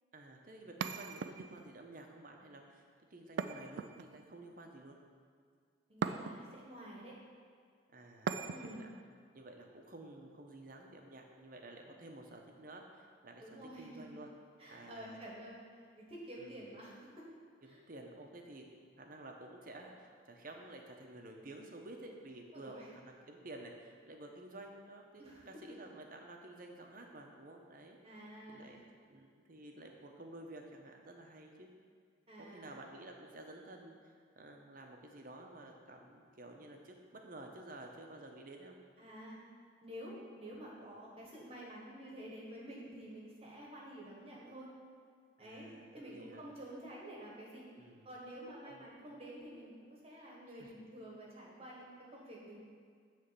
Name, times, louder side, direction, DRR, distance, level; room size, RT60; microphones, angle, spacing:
voice 1, 0.1-5.0 7.9-8.9 9.3-14.3 14.7-15.2 16.4-16.6 17.6-18.6 19.0-28.0 28.5-31.7 32.4-38.8 45.4-46.4 47.7-48.1 48.6-48.9 50.6-50.7, right 2 dB, 45° right, 2 dB, 0.9 m, -52 dB
sound 1, 0.8-1.8 3.4-4.4 6.0-6.6 8.3-8.9, right 6 dB, 70° right, 0.3 m, -39 dB
voice 2, 5.9-7.1 8.5-8.9 13.4-14.2 14.6-17.3 17.6-17.8 22.5-22.9 25.1-25.5 28.0-28.7 32.3-32.7 39.0-39.4 39.8-44.7 45.4-45.7 45.9-47.7 48.0-52.6, right 1 dB, 30° right, -4 dB, 1.3 m, -50 dB
10.0 x 3.4 x 6.8 m, 2.1 s
head